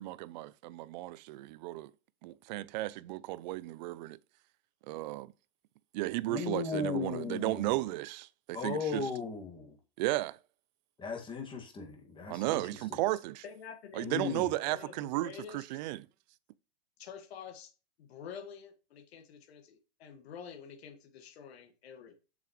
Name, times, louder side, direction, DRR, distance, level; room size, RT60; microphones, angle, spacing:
voice 1, 0.0-1.9 2.2-4.2 4.9-5.3 5.9-9.1 10.0-10.4 12.3-13.4 13.9-16.0, right 17 dB, 45° right, 0.4 m, -34 dB
voice 2, 6.3-7.7 8.5-9.8 11.0-12.6 14.0-14.5, left 5 dB, 15° left, 1.9 m, -36 dB
voice 3, 13.4-15.7 17.0-17.7 18.0-22.2, left 7 dB, 70° left, 1.8 m, -48 dB
7.0 x 6.1 x 3.1 m
hypercardioid pair, 130°, 33 cm